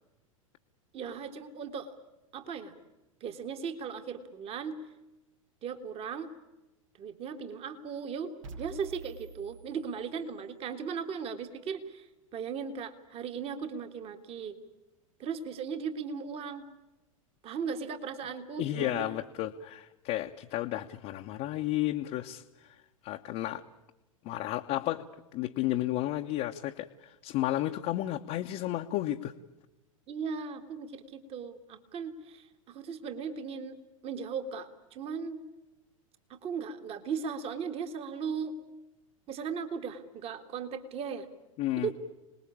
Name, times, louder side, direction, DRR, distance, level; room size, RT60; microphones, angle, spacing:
voice 1, 0.9-1.9 2.3-2.7 3.2-4.8 5.6-6.3 7.0-12.1 12.3-14.6 15.2-16.6 17.4-19.1 30.1-33.8 34.0-35.4 36.3-38.5 39.3-41.3 41.8-41.9, right 6 dB, 35° right, 8 dB, 1.9 m, -37 dB
sound 1, 8.4-10.5, right 3 dB, 65° right, 1.4 m, -47 dB
voice 2, 18.6-22.4 23.0-23.6 24.2-25.0 25.3-26.9 27.2-29.3 41.6-41.9, left 14 dB, 40° left, 2 dB, 1.0 m, -32 dB
26.5 x 20.0 x 8.7 m, 0.99 s
figure-of-eight pair, 95°, 18 cm